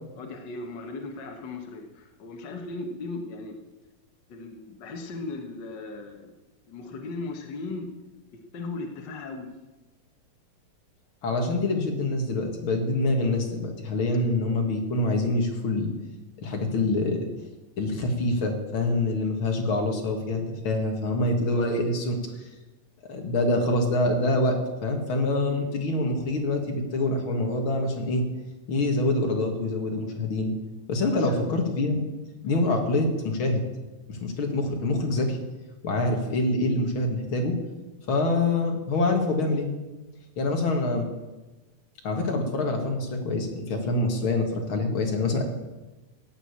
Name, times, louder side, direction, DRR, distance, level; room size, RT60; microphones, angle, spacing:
voice 1, 0.2-3.6 4.3-6.3 6.7-7.9 8.3-9.5 25.5-25.7 31.0-31.4 32.4-32.6, left 3 dB, 60° left, 4 dB, 1.1 m, -37 dB
voice 2, 11.2-15.9 16.4-17.3 17.8-22.2 23.1-28.2 28.7-30.5 30.9-32.0 32.4-33.7 34.1-35.4 35.8-37.6 38.1-39.7 40.4-41.1 42.0-45.4, left 2 dB, 45° left, 3 dB, 2.4 m, -25 dB
15.0 x 9.0 x 8.6 m, 1.1 s
omnidirectional pair, 4.0 m